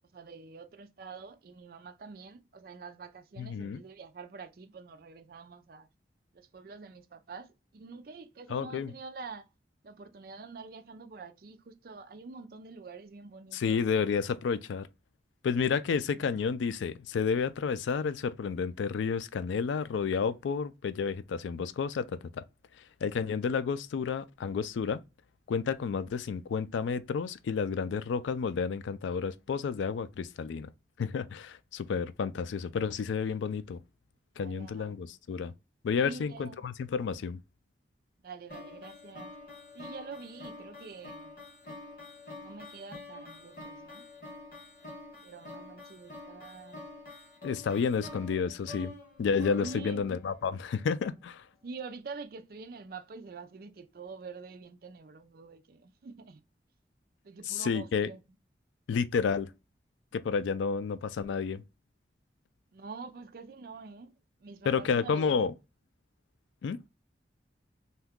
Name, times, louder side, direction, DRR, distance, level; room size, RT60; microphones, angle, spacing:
voice 1, 0.1-5.9 6.3-9.5 9.8-13.8 16.1-16.4 34.4-35.0 36.0-36.7 38.2-39.3 39.7-41.3 42.4-44.1 45.2-46.9 49.6-50.1 51.6-56.4 57.2-58.2 62.7-65.4, right 4 dB, 55° right, 0.4 m, -46 dB
voice 2, 3.4-3.8 8.5-8.9 13.5-14.9 15.4-22.4 23.0-25.0 25.5-30.7 31.0-33.8 34.4-35.5 35.8-37.4 47.4-48.9 49.2-51.4 57.5-58.1 58.9-59.5 60.1-61.6 64.7-65.5 66.6-66.9, left 6 dB, 90° left, 0.3 m, -31 dB
sound 1, 38.5-50.7, left 2 dB, 50° left, 1.1 m, -47 dB
2.8 x 2.3 x 3.5 m
head